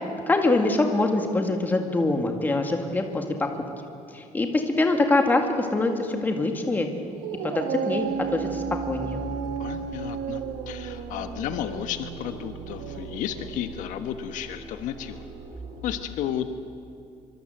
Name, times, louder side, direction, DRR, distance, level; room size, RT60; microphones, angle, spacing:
voice 1, 0.3-3.5 4.1-6.9 7.5-8.1 8.3-9.2, left 2 dB, 15° left, 4 dB, 2.0 m, -24 dB
Dog, 7.1-13.7, right 7 dB, 85° right, 1.6 m, -34 dB
sound 1, 7.9-16.0, right 1 dB, 35° right, 4.9 m, -41 dB
voice 2, 9.6-15.2 15.8-16.5, left 10 dB, 75° left, 8 dB, 1.3 m, -33 dB
24.5 x 24.5 x 7.9 m, 2.5 s
cardioid pair, 175°, 13 cm